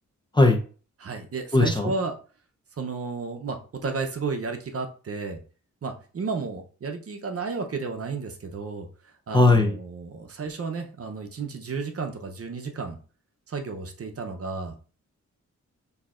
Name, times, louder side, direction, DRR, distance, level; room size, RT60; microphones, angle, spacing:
voice 1, 1.0-2.1 2.8-5.4 5.8-8.9 9.3-13.0 13.5-14.8, right 4 dB, 50° right, 5 dB, 0.7 m, -32 dB
voice 2, 1.5-1.9 9.3-9.8, left 2 dB, 15° left, 3 dB, 0.6 m, -18 dB
6.3 x 2.8 x 2.4 m, 0.38 s
wide cardioid pair, 120°, 31 cm